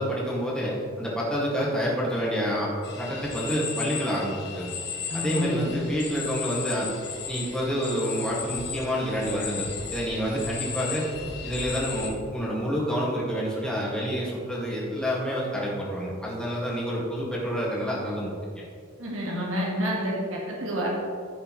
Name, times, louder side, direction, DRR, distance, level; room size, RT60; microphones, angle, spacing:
voice 1, 0.0-2.7 3.0-4.7 5.1-6.9 7.3-18.6, equal, 5° left, -6 dB, 2.0 m, -28 dB
sound 1, 2.8-12.1, left 6 dB, 55° left, 1.6 m, -36 dB
voice 2, 5.1-5.7 19.0-20.9, equal, 80° right, -3 dB, 1.8 m, -29 dB
14.5 x 6.7 x 3.2 m, 2.2 s
head